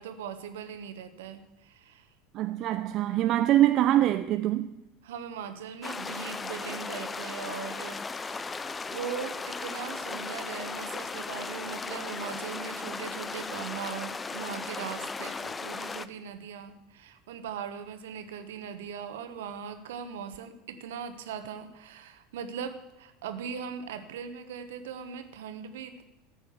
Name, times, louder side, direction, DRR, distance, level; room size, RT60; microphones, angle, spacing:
voice 1, 0.0-2.1 5.0-8.7 8.9-26.0, right 7 dB, 70° right, 1.2 m, -40 dB
voice 2, 2.3-4.7, right 13 dB, 45° right, 0.5 m, -24 dB
sound 1, 5.8-16.1, left 4 dB, 20° left, 0.6 m, -36 dB
14.0 x 6.3 x 8.1 m
figure-of-eight pair, 75°, 0 cm